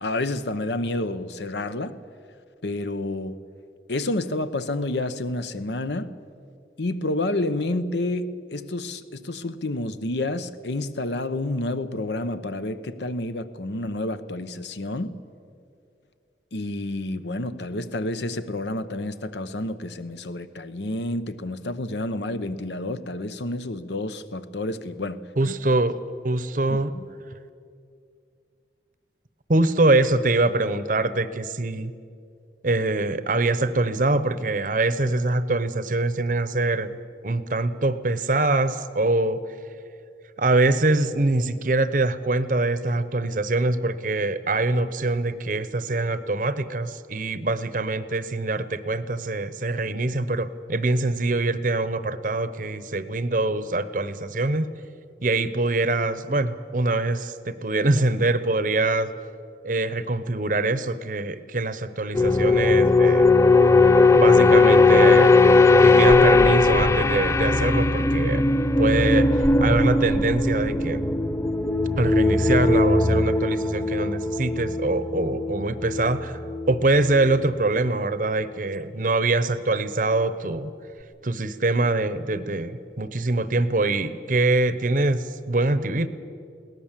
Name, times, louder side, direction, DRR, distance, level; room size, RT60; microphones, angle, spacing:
voice 1, 0.0-2.0 2.6-3.4 3.9-6.1 6.8-15.2 16.5-25.5 26.9-27.0, left 2 dB, 75° left, 0.9 m, -29 dB
voice 2, 25.4-26.0 26.2-26.9 29.5-31.9 32.6-37.0 37.2-39.4 40.4-54.7 55.2-59.1 59.6-63.3 63.8-65.3 65.8-68.4 68.8-71.0 72.0-76.4 76.7-80.7 81.2-86.1, right 2 dB, 45° right, 0.8 m, -24 dB
sound 1, 62.1-76.8 77.1-77.4, left 3 dB, 15° left, 0.4 m, -18 dB
21.5 x 18.0 x 7.4 m
head